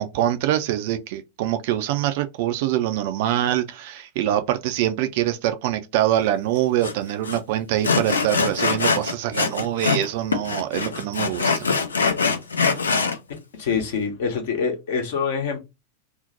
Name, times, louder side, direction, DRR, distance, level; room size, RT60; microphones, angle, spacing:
voice 1, 0.0-11.7, right 12 dB, 50° right, 0.3 m, -24 dB
Sawing, 6.8-6.9 7.2-7.4 7.8-10.1 10.3-13.2, left 4 dB, 75° left, 0.4 m, -23 dB
voice 2, 13.6-15.6, left 5 dB, 55° left, 0.8 m, -25 dB
2.6 x 2.0 x 3.9 m
figure-of-eight pair, 90°, 0 cm